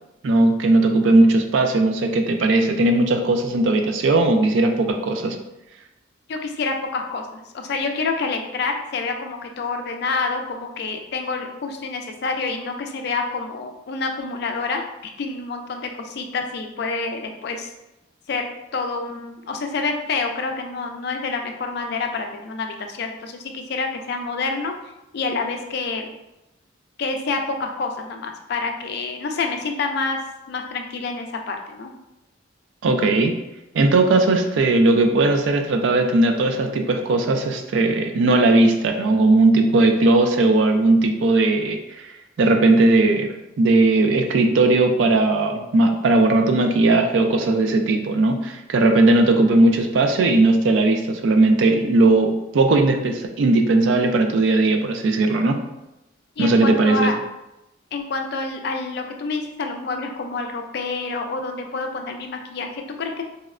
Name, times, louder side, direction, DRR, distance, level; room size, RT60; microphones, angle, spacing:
voice 1, 0.2-5.4 32.8-33.3 33.7-42.1 42.4-55.6 56.4-57.1, right 2 dB, 70° right, 5 dB, 0.3 m, -18 dB
voice 2, 6.3-17.7 18.3-18.4 18.7-24.7 25.1-26.1 27.0-30.2 30.5-31.9 56.4-57.1 57.9-63.2, left 4 dB, 55° left, 4 dB, 0.4 m, -28 dB
4.1 x 2.0 x 2.4 m, 0.93 s
head